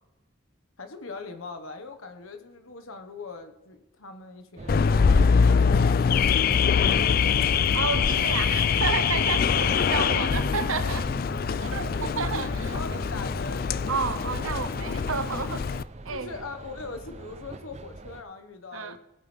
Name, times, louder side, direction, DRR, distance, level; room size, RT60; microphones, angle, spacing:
voice 1, 0.8-7.2 11.0-14.0 16.1-19.0, left 3 dB, 85° left, 1.4 m, -41 dB
sound 1, 4.6-18.2, right 2 dB, 30° right, 0.5 m, -41 dB
Car / Alarm, 4.7-15.8, left 6 dB, 45° left, 0.3 m, -23 dB
voice 2, 7.7-11.1 11.6-13.0 13.9-15.6 16.0-16.3 18.7-19.0, right 5 dB, 80° right, 0.9 m, -31 dB
18.0 x 8.8 x 3.4 m
head